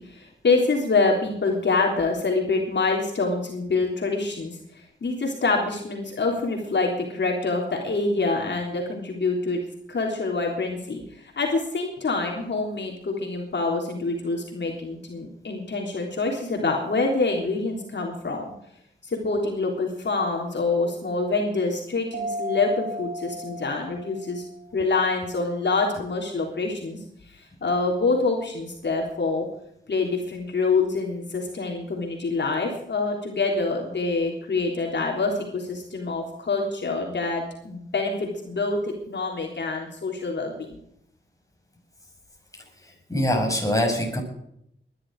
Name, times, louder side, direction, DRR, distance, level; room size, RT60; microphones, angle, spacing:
voice 1, 0.0-9.6 9.9-18.5 19.0-24.4 24.7-27.0 27.3-29.4 29.9-40.8, left 3 dB, 65° left, 0 dB, 3.6 m, -26 dB
Mallet percussion, 22.1-24.7, equal, 80° right, 5.2 m, -34 dB
voice 2, 42.8-44.2, left 1 dB, 15° left, 1 dB, 6.6 m, -24 dB
21.0 x 11.5 x 4.9 m, 0.76 s
wide cardioid pair, 80°, 20 cm